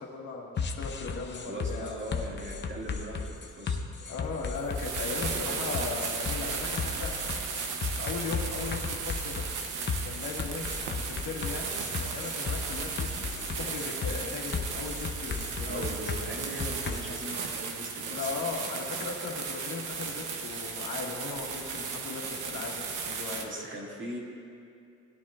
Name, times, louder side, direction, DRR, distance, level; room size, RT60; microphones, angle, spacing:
voice 1, 0.0-1.9 4.0-7.1 7.9-9.5 10.0-10.7 11.0-15.8 18.1-23.5, left 4 dB, 75° left, -2 dB, 1.7 m, -38 dB
sound 1, 0.6-17.0, left 5 dB, 35° left, 0.8 m, -35 dB
voice 2, 1.4-3.8 5.3-5.6 15.7-18.4 23.4-24.2, right 1 dB, 40° right, -2 dB, 2.2 m, -39 dB
sound 2, 4.6-23.4, right 5 dB, 90° right, 1.0 m, -36 dB
17.5 x 9.3 x 2.5 m, 2.4 s
cardioid pair, 90°, 30 cm